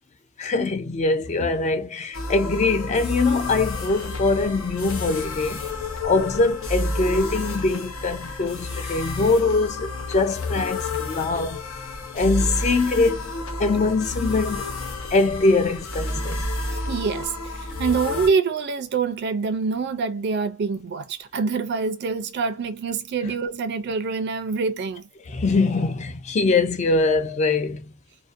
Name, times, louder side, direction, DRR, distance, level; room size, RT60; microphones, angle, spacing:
voice 1, 0.4-5.6 6.0-11.6 12.1-13.3 13.6-14.6 15.1-16.4 23.2-23.3 25.3-27.9, left 3 dB, 35° left, 0.3 m, -23 dB
sound 1, 2.1-18.3, left 2 dB, 85° left, 0.8 m, -30 dB
voice 2, 16.7-25.0, right 5 dB, 55° right, 0.4 m, -26 dB
2.6 x 2.0 x 2.4 m
head